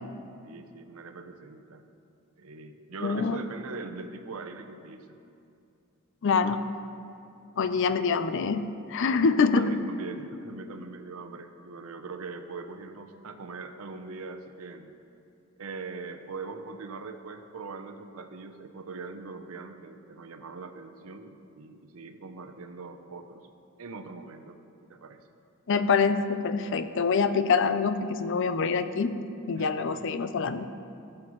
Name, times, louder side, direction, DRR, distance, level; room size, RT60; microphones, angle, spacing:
voice 1, 0.4-1.8 2.4-5.2 9.6-14.9 15.6-23.4 23.8-24.6 24.9-25.2 29.6-30.1, right 4 dB, 85° right, 8 dB, 0.7 m, -41 dB
voice 2, 3.0-3.4 6.2-6.6 7.6-8.6 8.9-9.8 25.7-29.1 29.5-30.7, left 5 dB, 60° left, 11 dB, 0.5 m, -25 dB
15.5 x 7.7 x 3.1 m, 2.6 s
head